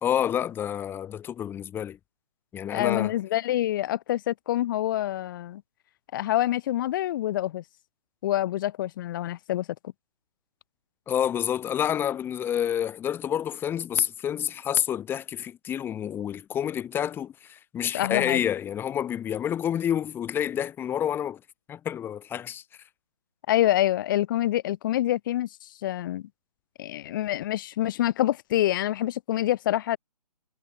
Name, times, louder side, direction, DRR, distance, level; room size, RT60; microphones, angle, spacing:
voice 1, 0.0-2.0 2.5-3.1 11.1-21.4 21.7-22.6, left 9 dB, 10° left, 4.2 m, -28 dB
voice 2, 2.7-5.6 6.1-7.6 8.2-9.7 17.9-18.4 23.5-25.5 25.8-26.3 26.8-30.0, left 13 dB, 30° left, 5.6 m, -26 dB
figure-of-eight pair, 140°, 21 cm